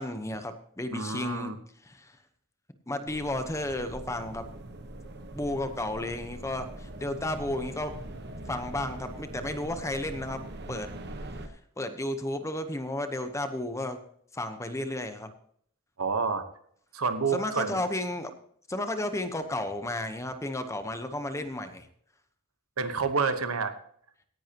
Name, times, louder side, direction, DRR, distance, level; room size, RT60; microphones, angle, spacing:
voice 1, 0.0-1.5 1.8-2.2 2.9-4.4 5.3-7.9 8.5-10.9 11.8-14.0 14.3-15.3 17.3-18.3 18.7-21.9, left 1 dB, 15° left, 8 dB, 1.0 m, -33 dB
voice 2, 0.9-1.6 16.0-16.4 16.9-17.8 22.8-23.7, right 5 dB, 80° right, 9 dB, 1.2 m, -28 dB
sound 1, 3.1-11.5, right 1 dB, 50° right, 1.1 m, -42 dB
17.0 x 10.5 x 3.0 m, 0.63 s
head